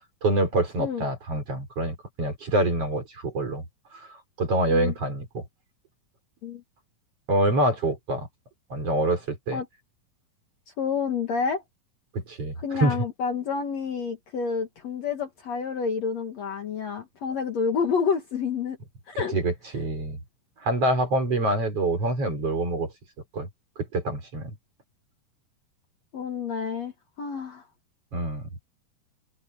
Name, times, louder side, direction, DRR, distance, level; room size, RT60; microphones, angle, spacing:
voice 1, 0.2-3.7 3.9-5.4 7.3-8.3 8.7-9.6 12.1-13.0 19.3-20.2 20.6-22.9 23.3-23.5 23.8-24.5 28.1-28.5, right 1 dB, 40° right, 5.9 m, -26 dB
voice 2, 10.8-11.6 12.6-18.8 19.1-19.4 26.1-27.6, left 5 dB, 55° left, 2.5 m, -29 dB
open air
omnidirectional pair, 4.2 m